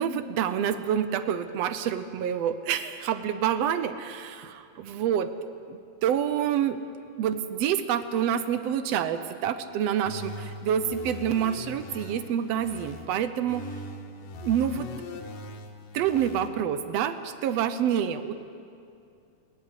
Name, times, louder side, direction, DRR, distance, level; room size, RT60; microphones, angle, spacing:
voice 1, 0.0-5.3 5.7-6.8 7.2-13.6 14.4-14.9 15.9-18.3, right 9 dB, 70° right, 11 dB, 1.6 m, -27 dB
sound 1, 10.1-13.1 13.5-16.5, left 3 dB, 85° left, 3.1 m, -41 dB
21.0 x 16.0 x 9.9 m, 2.5 s
omnidirectional pair, 3.7 m